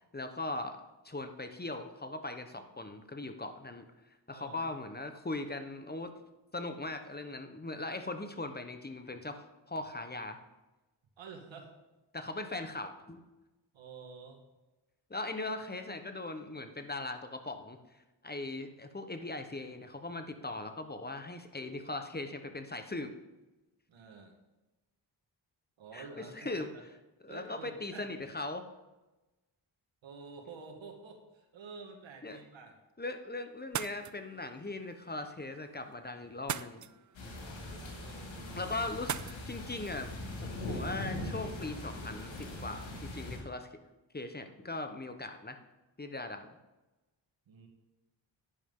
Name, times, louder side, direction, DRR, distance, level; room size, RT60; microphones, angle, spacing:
voice 1, 0.0-3.8 4.3-6.1 6.5-10.4 12.1-13.3 15.1-17.8 18.2-23.1 25.9-26.7 27.2-28.7 32.2-32.4 33.0-36.9 38.6-40.1 40.4-43.7 44.1-45.6 46.0-46.5, left 2 dB, 20° left, 7 dB, 1.1 m, -39 dB
voice 2, 4.3-4.7 11.2-11.7 13.7-14.4 23.9-24.4 25.8-26.8 27.3-28.1 30.0-32.8 37.2-38.7 47.5-47.7, right 4 dB, 85° right, 4 dB, 1.7 m, -50 dB
sound 1, 33.6-42.0, right 9 dB, 45° right, 0.5 m, -45 dB
sound 2, 37.1-43.4, left 1 dB, 85° left, 2.9 m, -41 dB
10.5 x 10.0 x 3.8 m, 1.1 s
cardioid pair, 70°, 44 cm